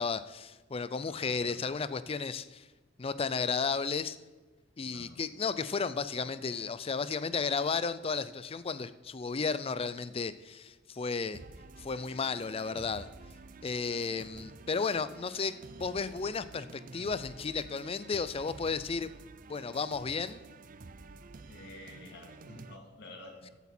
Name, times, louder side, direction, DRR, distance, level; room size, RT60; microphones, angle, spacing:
voice 1, 0.0-2.7 3.0-4.2 4.8-11.4 11.8-13.1 13.6-19.1 19.5-20.4, left 5 dB, 30° left, 15 dB, 0.4 m, -33 dB
voice 2, 1.1-1.6 4.8-5.2 21.5-23.5, left 2 dB, 65° left, 0 dB, 2.3 m, -50 dB
sound 1, 11.3-22.8, right 3 dB, 45° right, 0.5 m, -50 dB
14.5 x 8.2 x 4.4 m, 1.2 s
head